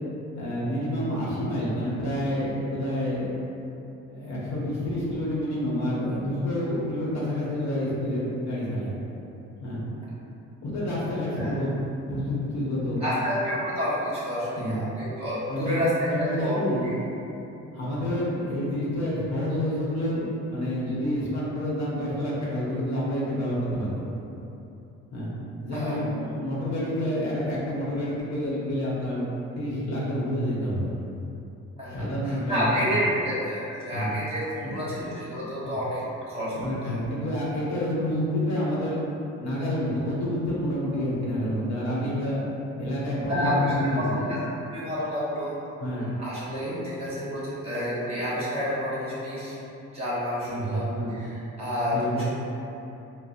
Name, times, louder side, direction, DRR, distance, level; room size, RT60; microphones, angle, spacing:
voice 1, 0.3-3.3 4.1-8.9 9.6-9.8 10.6-11.8 12.1-13.0 14.6-14.8 15.5-17.0 17.7-24.1 25.1-25.3 25.6-29.2 29.5-30.9 31.9-33.0 33.9-34.1 34.6-34.8 36.5-39.0 39.4-42.4 42.8-44.3 45.8-46.1 50.5-51.2 51.9-52.2, equal, 65° left, -7 dB, 0.9 m, -28 dB
voice 2, 13.0-16.9 25.7-26.0 31.8-36.0 36.3-36.6 36.8-37.0 43.3-44.4 44.7-45.6 45.9-49.6 49.9-50.9 51.1-52.2, equal, 20° right, -10 dB, 1.1 m, -29 dB
4.0 x 2.0 x 2.5 m, 2.9 s
cardioid pair, 90°, 30 cm